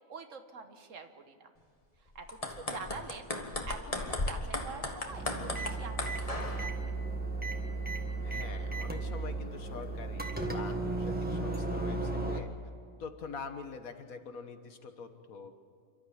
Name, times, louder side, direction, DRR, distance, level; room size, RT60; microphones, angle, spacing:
voice 1, 0.1-1.5 2.2-3.2 3.7-6.9, right 5 dB, 65° right, 7 dB, 1.6 m, -46 dB
sound 1, 2.2-6.7, left 2 dB, 25° left, 1.5 m, -36 dB
sound 2, 5.1-12.4, right 2 dB, 5° right, 1.5 m, -35 dB
voice 2, 8.2-12.5 13.0-15.5, left 5 dB, 90° left, 7 dB, 1.8 m, -45 dB
28.5 x 13.0 x 8.6 m, 2.2 s
omnidirectional pair, 1.4 m